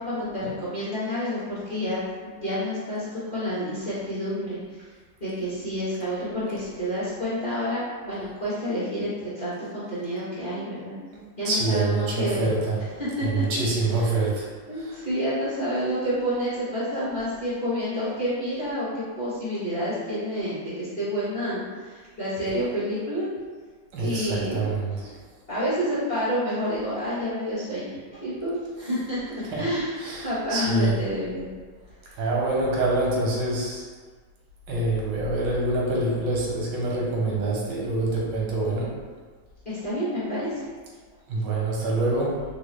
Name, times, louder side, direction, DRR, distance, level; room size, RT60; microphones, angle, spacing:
voice 1, 0.0-2.0 2.4-4.8 5.2-11.0 11.4-12.5 13.0-13.6 14.0-14.1 14.7-23.3 24.0-24.5 25.5-31.5 39.6-40.5, equal, 30° left, -11 dB, 1.1 m, -29 dB
voice 2, 11.1-12.8 13.2-14.5 14.7-15.0 23.9-25.1 29.5-29.7 30.0-31.0 32.2-33.8 34.7-38.9 41.3-42.4, right 2 dB, 90° right, -4 dB, 1.5 m, -26 dB
3.8 x 2.2 x 3.2 m, 1.5 s
omnidirectional pair, 1.9 m